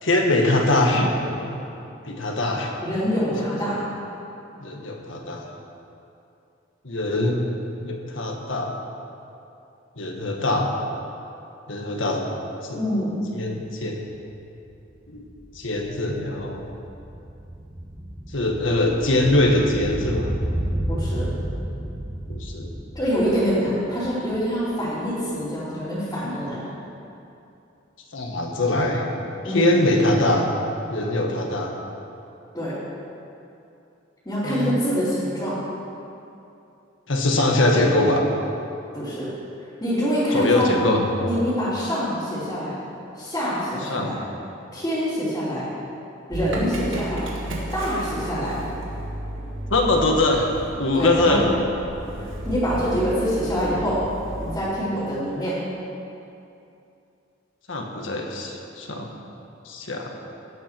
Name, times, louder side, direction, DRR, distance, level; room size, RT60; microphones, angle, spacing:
voice 1, 0.0-1.6 2.0-2.7 4.6-5.5 6.8-7.4 7.8-8.7 10.0-10.7 11.7-12.3 12.6-12.8 13.3-14.1 15.1-15.2 15.5-16.7 18.3-20.4 22.3-22.7 28.1-29.0 29.4-30.5 30.9-31.7 34.4-34.8 37.1-38.2 40.3-41.1 43.9-44.2 49.7-50.5 50.8-51.4 57.7-59.1 59.6-60.1, left 2 dB, 75° left, 1 dB, 1.6 m, -22 dB
voice 2, 2.8-3.8 12.7-13.2 20.9-21.3 22.9-26.7 29.4-29.8 32.5-32.7 34.2-35.6 38.9-39.3 39.8-40.7 41.2-42.8 43.2-44.2 44.7-45.7 46.3-47.3 47.7-48.6 50.9-51.4 52.4-54.0 54.4-55.6, equal, 15° left, -15 dB, 3.3 m, -25 dB
sound 1, 14.1-14.2 14.5-24.8 25.1-25.2, right 1 dB, 10° right, 0.8 m, -32 dB
Motor vehicle (road) / Engine starting, 46.3-54.6, right 1 dB, 75° right, 2.2 m, -33 dB
17.0 x 8.4 x 4.6 m, 2.7 s
head